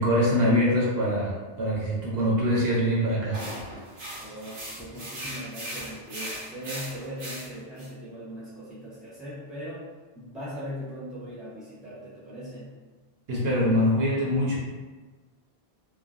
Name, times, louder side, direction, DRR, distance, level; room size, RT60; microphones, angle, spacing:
voice 1, 0.0-3.4 13.3-14.6, equal, 65° right, -5 dB, 0.9 m, -24 dB
sound 1, 3.3-7.9, right 1 dB, 90° right, 1.1 m, -38 dB
voice 2, 4.2-9.8 10.1-12.7, equal, ahead, -9 dB, 0.8 m, -39 dB
3.1 x 2.0 x 2.5 m, 1.3 s
omnidirectional pair, 1.1 m